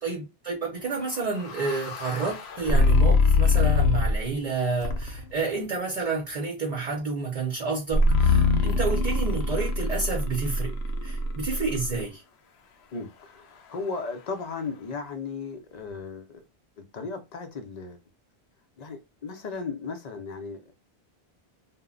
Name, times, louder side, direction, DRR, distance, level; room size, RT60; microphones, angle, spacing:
voice 1, 0.0-10.8 11.0-12.2, right 4 dB, 45° right, 0.6 m, -30 dB
sound 1, 1.0-4.3 4.8-5.3 7.9-12.0, left 3 dB, 85° left, 0.8 m, -23 dB
voice 2, 12.9-16.4 16.8-18.0 18.8-20.6, left 4 dB, 50° left, 0.5 m, -36 dB
2.1 x 2.0 x 3.6 m
omnidirectional pair, 1.1 m